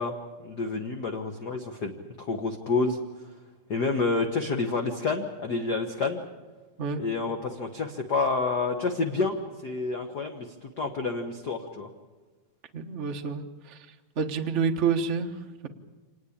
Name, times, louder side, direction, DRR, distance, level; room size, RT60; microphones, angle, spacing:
voice 1, 0.0-3.0 3.7-6.2 7.0-9.4 9.6-11.9, left 3 dB, 50° left, 4 dB, 1.3 m, -29 dB
voice 2, 12.7-13.8 14.2-15.3, right 6 dB, 75° right, 5 dB, 0.6 m, -28 dB
26.5 x 19.0 x 8.6 m, 1.3 s
omnidirectional pair, 3.5 m